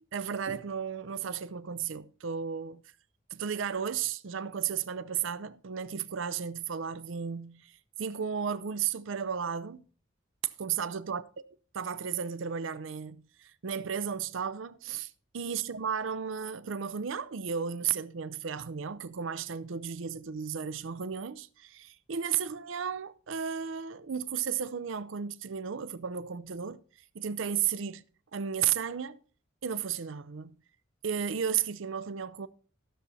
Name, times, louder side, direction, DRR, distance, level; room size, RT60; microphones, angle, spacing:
voice 1, 0.1-2.8 3.3-7.7 8.0-9.8 10.6-11.2 11.8-26.8 27.1-28.0 28.3-29.2 29.6-30.6 31.0-32.5, right 7 dB, 70° right, 0.5 m, -34 dB
13.5 x 6.9 x 4.1 m
head